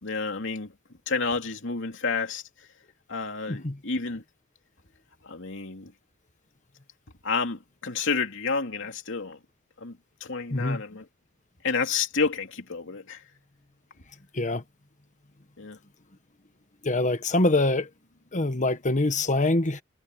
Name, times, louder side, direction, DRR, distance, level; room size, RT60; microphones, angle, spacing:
voice 1, 0.0-0.7 1.1-2.7 3.1-4.2 5.2-5.9 7.2-9.4 9.8-11.1 11.6-13.2 15.6-15.8, left 4 dB, 65° left, 2.9 m, -30 dB
voice 2, 10.5-10.8 14.3-14.6 16.8-17.9 18.3-19.8, left 2 dB, 35° left, 1.4 m, -24 dB
head